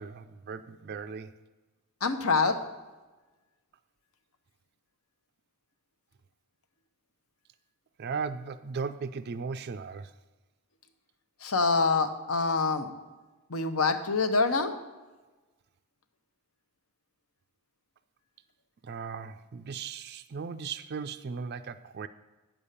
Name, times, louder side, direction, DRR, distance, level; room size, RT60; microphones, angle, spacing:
voice 1, 0.0-1.4 8.0-10.1 18.8-22.1, right 5 dB, 50° right, 10 dB, 0.4 m, -37 dB
voice 2, 2.0-2.6 11.4-12.9 13.5-14.8, left 4 dB, 70° left, 8 dB, 1.0 m, -25 dB
9.0 x 7.1 x 6.6 m, 1.2 s
head